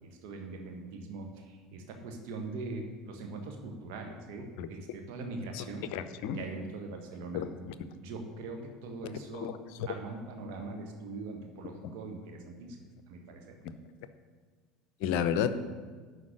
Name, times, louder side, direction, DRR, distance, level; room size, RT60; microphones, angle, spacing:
voice 1, 0.0-5.9 6.3-7.5 7.9-9.5 9.9-13.4, right 3 dB, 55° right, 3 dB, 1.5 m, -42 dB
voice 2, 5.9-6.4 7.3-7.7 9.3-9.5 15.0-15.5, left 9 dB, 55° left, 12 dB, 0.6 m, -31 dB
11.5 x 4.5 x 8.0 m, 1.5 s
figure-of-eight pair, 70°, 0 cm